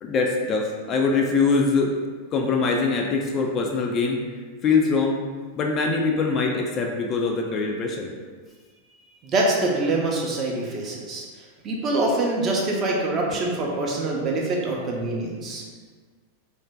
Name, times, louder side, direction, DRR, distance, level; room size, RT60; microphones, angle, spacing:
voice 1, 0.0-1.9 2.3-4.2 4.6-5.2 5.6-8.1, left 4 dB, 30° left, 1 dB, 0.3 m, -23 dB
voice 2, 9.2-11.3 11.6-15.6, right 2 dB, 30° right, -2 dB, 0.6 m, -25 dB
2.6 x 2.1 x 3.3 m, 1.5 s
figure-of-eight pair, 90°, 0 cm